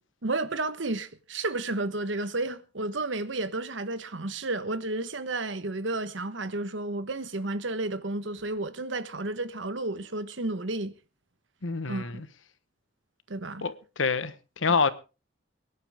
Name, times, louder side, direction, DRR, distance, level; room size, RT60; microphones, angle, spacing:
voice 1, 0.2-10.9 11.9-12.2 13.3-13.6, right 2 dB, 70° right, 1.3 m, -32 dB
voice 2, 11.6-12.3 13.6-14.9, left 5 dB, 90° left, 1.2 m, -27 dB
23.0 x 11.0 x 3.6 m
head